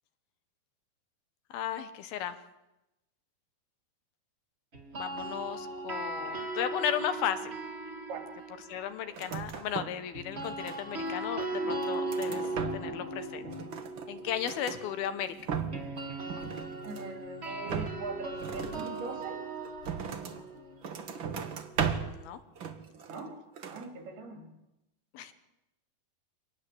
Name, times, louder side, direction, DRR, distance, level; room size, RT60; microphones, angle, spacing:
voice 1, 1.5-2.4 4.9-7.6 8.7-12.4 12.7-13.5 14.1-15.4 22.1-22.4 25.1-25.3, left 10 dB, 75° left, 10 dB, 3.1 m, -35 dB
sound 1, 4.7-8.9 10.1-22.0, right 2 dB, 20° right, 1.9 m, -38 dB
sound 2, 9.1-10.1 10.3-11.1 11.6-13.1 13.4-14.8 15.2-16.0 16.3-17.2 17.7-20.4 20.8-22.2 22.6-23.3 23.6-23.9, right 7 dB, 55° right, 1.3 m, -37 dB
voice 2, 16.8-19.4 23.1-23.4 23.7-24.5, right 3 dB, 80° right, 4 dB, 5.5 m, -41 dB
24.5 x 19.5 x 7.9 m, 0.94 s
omnidirectional pair, 4.4 m